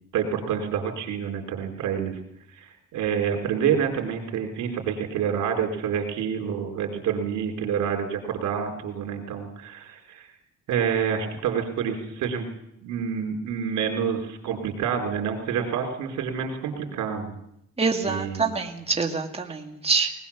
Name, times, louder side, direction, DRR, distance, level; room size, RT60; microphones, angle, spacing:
voice 1, 0.1-2.2 2.6-10.3 10.7-12.5 12.8-17.3 18.0-18.5, right 7 dB, 85° right, 3 dB, 4.0 m, -28 dB
voice 2, 17.8-20.1, right 4 dB, 20° right, 3 dB, 2.3 m, -25 dB
20.0 x 20.0 x 7.2 m, 0.77 s
cardioid pair, 90°, 30 cm